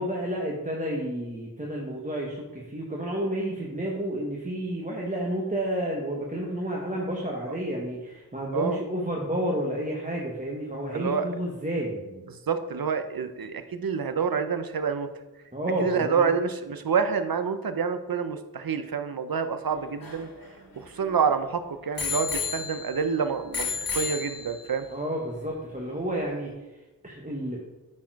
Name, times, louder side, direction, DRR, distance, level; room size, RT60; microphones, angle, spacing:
voice 1, 0.0-12.2 15.5-16.3 24.9-27.6, right 1 dB, 20° right, -2 dB, 1.2 m, -31 dB
voice 2, 10.9-11.3 12.3-15.1 15.8-20.3 20.8-24.9, right 6 dB, 70° right, 10 dB, 0.7 m, -27 dB
Bicycle bell, 19.7-21.3 22.0-23.1 23.5-24.8 25.5-25.6, left 5 dB, 65° left, 1.6 m, -33 dB
8.4 x 4.3 x 4.7 m, 1.1 s
wide cardioid pair, 50°, 37 cm